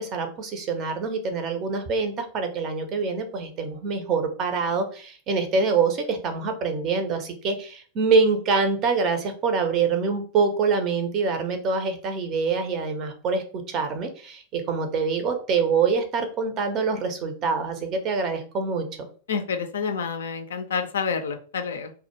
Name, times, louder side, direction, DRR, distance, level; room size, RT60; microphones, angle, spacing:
voice 1, 0.0-18.9, right 4 dB, 35° right, 6 dB, 0.5 m, -25 dB
voice 2, 19.3-21.9, left 6 dB, 65° left, 7 dB, 0.3 m, -28 dB
2.1 x 2.0 x 2.9 m, 0.41 s
figure-of-eight pair, 90°, 0 cm